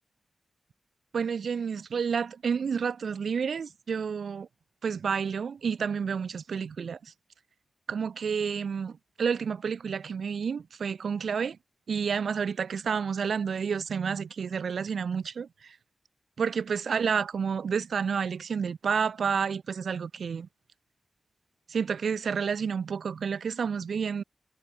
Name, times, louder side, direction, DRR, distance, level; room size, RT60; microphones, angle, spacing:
voice 1, 1.1-4.5 4.8-7.1 7.9-11.6 11.9-15.7 16.4-20.5 21.7-24.2, right 6 dB, 85° right, 4.3 m, -30 dB
wide cardioid pair, 130°, 0 cm